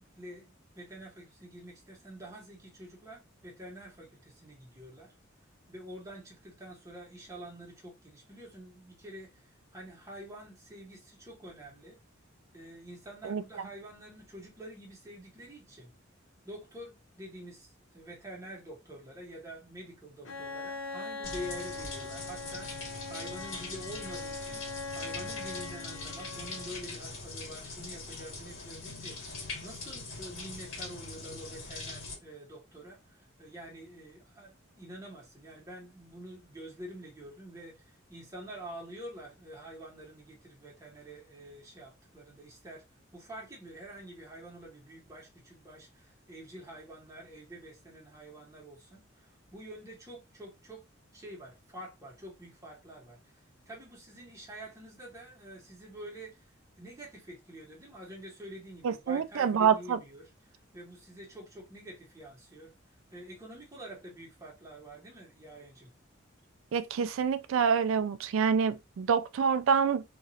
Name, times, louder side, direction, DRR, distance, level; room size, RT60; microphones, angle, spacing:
voice 1, 0.0-5.1 5.7-12.0 12.5-15.9 16.4-24.6 24.9-42.9 43.1-50.9 51.1-62.7 63.1-65.9, right 1 dB, 15° right, 1.1 m, -47 dB
Bowed string instrument, 20.2-27.0, left 3 dB, 65° left, 0.7 m, -41 dB
sound 1, 21.2-32.2, left 3 dB, 90° left, 1.5 m, -42 dB
voice 2, 58.8-60.0 66.7-70.0, right 6 dB, 80° right, 0.3 m, -27 dB
3.0 x 2.5 x 2.7 m
head